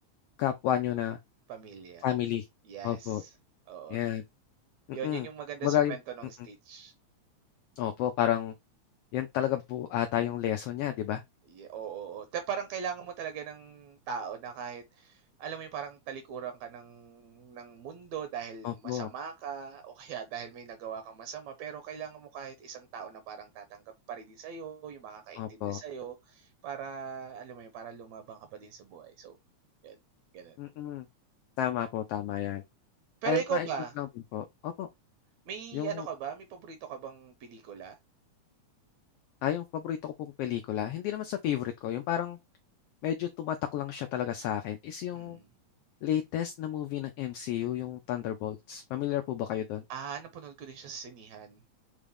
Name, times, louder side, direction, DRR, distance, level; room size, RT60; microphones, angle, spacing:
voice 1, 0.4-1.2 2.0-2.5 2.8-3.2 3.9-4.2 4.9-5.3 5.6-6.0 7.8-8.5 9.1-11.2 18.6-19.1 25.4-25.8 30.6-31.1 31.6-32.6 33.2-33.7 34.0-34.1 34.3-34.9 35.7-36.1 39.4-42.4 43.0-45.4 46.0-49.8, left 11 dB, 90° left, 1.3 m, -31 dB
voice 2, 1.5-2.1 2.7-3.3 3.7-4.0 4.9-6.9 11.5-29.4 29.8-30.0 30.3-30.6 33.2-33.9 35.5-38.0 45.1-45.5 49.9-51.6, right 8 dB, 75° right, 1.9 m, -40 dB
5.5 x 2.5 x 3.4 m
omnidirectional pair, 3.3 m